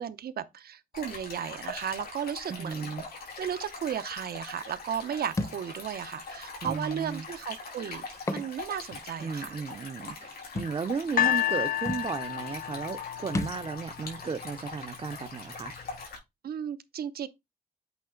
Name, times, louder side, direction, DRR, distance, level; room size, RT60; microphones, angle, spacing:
voice 1, 0.0-2.9 3.4-8.1 8.3-9.6 16.4-17.3, right 9 dB, 80° right, 0.7 m, -35 dB
Stream, 0.9-16.2, left 3 dB, 85° left, 3.7 m, -42 dB
voice 2, 2.5-3.0 6.6-7.3 9.2-15.7, right 5 dB, 35° right, 0.5 m, -35 dB
Thump thud, 5.4-5.6 6.7-6.8 8.1-8.5 8.9-9.0 10.6-10.8 11.5-11.6 11.9-12.1 13.3-13.6, left 2 dB, 20° left, 0.6 m, -32 dB
sound 1, 11.2-14.3 15.1-15.2, left 12 dB, 70° left, 0.4 m, -30 dB
8.2 x 3.1 x 3.7 m
wide cardioid pair, 100°, 15 cm